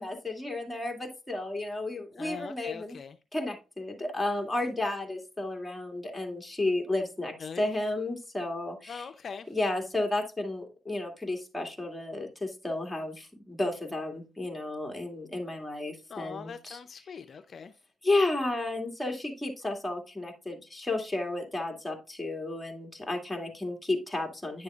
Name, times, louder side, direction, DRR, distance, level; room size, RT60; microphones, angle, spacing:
voice 1, 0.0-3.0 3.3-9.1 9.5-16.8 18.0-24.6, left 2 dB, 10° left, 2.2 m, -32 dB
voice 2, 2.2-3.2 7.4-7.7 8.9-9.5 16.1-17.7, left 6 dB, 55° left, 0.5 m, -41 dB
9.9 x 6.8 x 2.4 m
cardioid pair, 90°, 0 cm